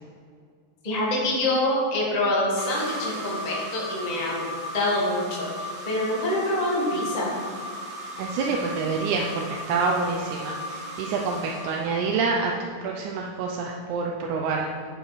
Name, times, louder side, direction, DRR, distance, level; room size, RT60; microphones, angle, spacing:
voice 1, 0.8-4.5 4.7-7.3, left 1 dB, 20° left, -5 dB, 1.0 m, -26 dB
sound 1, 2.6-12.5, equal, 55° right, 1.8 m, -36 dB
voice 2, 8.2-14.7, right 4 dB, 80° right, 1 dB, 2.1 m, -27 dB
10.5 x 6.3 x 4.1 m, 2.1 s
omnidirectional pair, 3.5 m